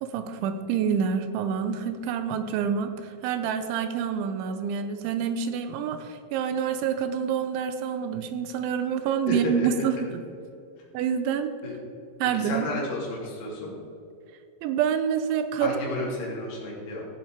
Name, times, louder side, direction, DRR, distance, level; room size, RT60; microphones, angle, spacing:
voice 1, 0.0-10.2 10.9-11.5 12.2-12.7 14.6-15.8, right 7 dB, 85° right, 9 dB, 3.2 m, -27 dB
voice 2, 9.3-9.7 11.6-11.8 12.3-13.8 15.6-17.1, left 1 dB, 50° left, -4 dB, 4.3 m, -32 dB
16.5 x 7.4 x 5.0 m, 2.6 s
omnidirectional pair, 5.3 m